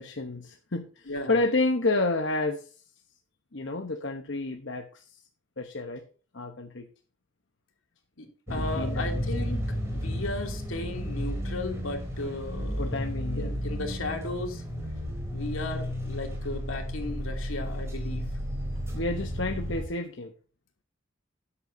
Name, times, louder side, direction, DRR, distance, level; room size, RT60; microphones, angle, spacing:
voice 1, 0.0-2.7 3.5-5.2 5.6-6.0 6.3-6.9 8.5-9.2 12.8-13.5 18.9-20.3, left 2 dB, 65° left, 4 dB, 1.0 m, -30 dB
voice 2, 1.1-1.4 8.2-13.0 13.4-14.6 15.3-18.3, left 2 dB, 85° left, 2 dB, 2.9 m, -35 dB
sound 1, 8.5-19.8, equal, 15° right, 3.5 m, -33 dB
13.5 x 9.9 x 2.7 m, 0.37 s
head